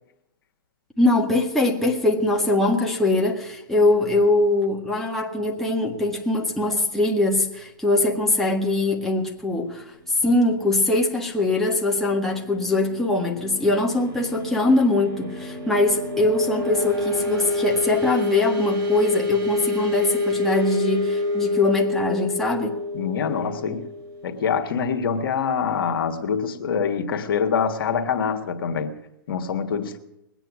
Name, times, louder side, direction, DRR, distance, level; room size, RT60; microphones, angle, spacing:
voice 1, 1.0-22.8, left 2 dB, 5° left, 1.7 m, -22 dB
sound 1, 12.2-24.7, left 2 dB, 65° right, 7.9 m, -27 dB
voice 2, 22.9-23.8 24.2-28.9 29.3-30.0, left 6 dB, 75° left, 1.6 m, -25 dB
21.0 x 9.1 x 6.1 m
hypercardioid pair, 135°, 12 cm